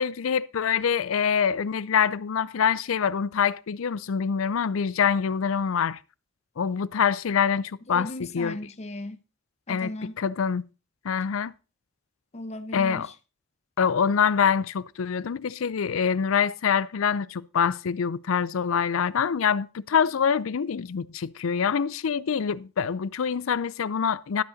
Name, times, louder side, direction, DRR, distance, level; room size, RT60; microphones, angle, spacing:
voice 1, 0.0-6.0 6.6-8.6 9.7-9.9 10.2-10.6 11.0-11.5 12.7-13.1 13.8-24.4, left 7 dB, 90° left, 0.5 m, -25 dB
voice 2, 7.9-9.2 9.7-10.2 12.3-13.1, left 1 dB, 35° left, 0.8 m, -37 dB
12.5 x 7.8 x 4.0 m
head